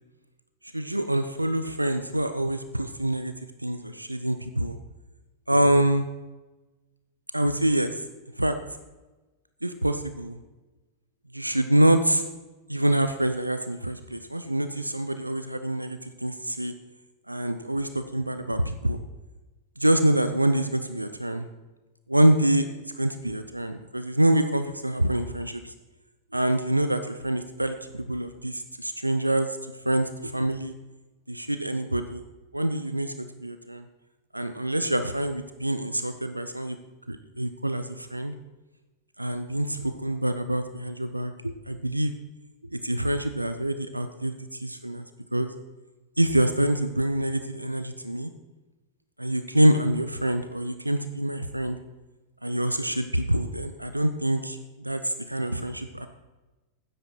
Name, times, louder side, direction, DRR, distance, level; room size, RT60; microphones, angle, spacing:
voice 1, 0.7-3.3 3.6-4.8 5.5-6.1 7.3-8.0 8.4-8.6 9.6-10.4 11.3-12.2 12.7-16.7 17.3-19.0 19.8-21.5 22.1-22.6 22.9-25.7 26.3-29.6 29.8-30.7 31.3-32.2 32.5-33.8 34.3-36.8 37.1-38.3 39.2-42.2 42.7-45.0 45.3-45.5 46.2-48.3 49.2-51.8 52.4-56.1, right 1 dB, 85° right, 9 dB, 0.6 m, -26 dB
12.5 x 9.8 x 4.4 m, 1.2 s
figure-of-eight pair, 90°, 0 cm